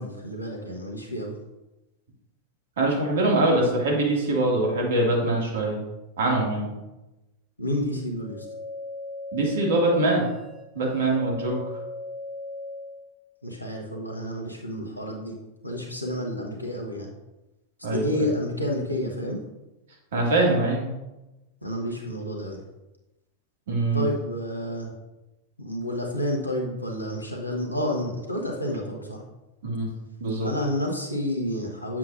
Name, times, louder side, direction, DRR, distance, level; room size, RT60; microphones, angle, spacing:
voice 1, 0.0-1.3 7.6-8.4 13.4-15.4 15.6-17.1 17.9-19.4 21.6-22.6 23.9-24.9 25.6-29.2 30.4-32.0, left 1 dB, 85° left, 0 dB, 1.3 m, -30 dB
voice 2, 2.8-5.8 6.2-6.7 9.3-10.2 10.7-11.6 17.8-18.2 20.1-20.9 23.7-24.1 29.6-29.9 30.2-30.5, right 2 dB, 60° right, -2 dB, 2.0 m, -23 dB
sound 1, 8.2-13.1, left 2 dB, 5° right, 2.0 m, -38 dB
8.1 x 7.3 x 2.5 m, 1.0 s
figure-of-eight pair, 90°, 0 cm